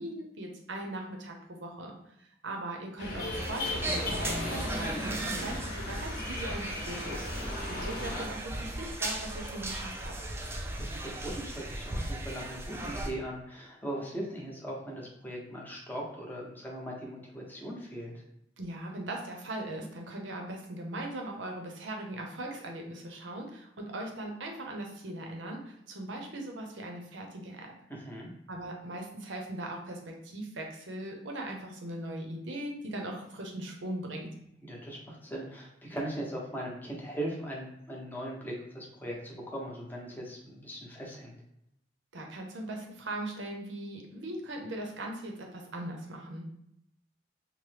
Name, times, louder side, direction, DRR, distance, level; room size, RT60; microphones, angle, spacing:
voice 1, 0.0-10.1 18.6-27.7 28.5-34.3 42.1-46.5, right 1 dB, 85° right, 1 dB, 0.7 m, -39 dB
sound 1, 3.0-8.3, left 1 dB, 55° left, 0.7 m, -36 dB
sound 2, 3.3-13.1, right 1 dB, 15° right, 0.3 m, -37 dB
voice 2, 10.6-18.2 27.9-28.3 34.6-41.3, right 1 dB, 10° left, -3 dB, 0.7 m, -39 dB
3.0 x 2.0 x 3.2 m, 0.77 s
head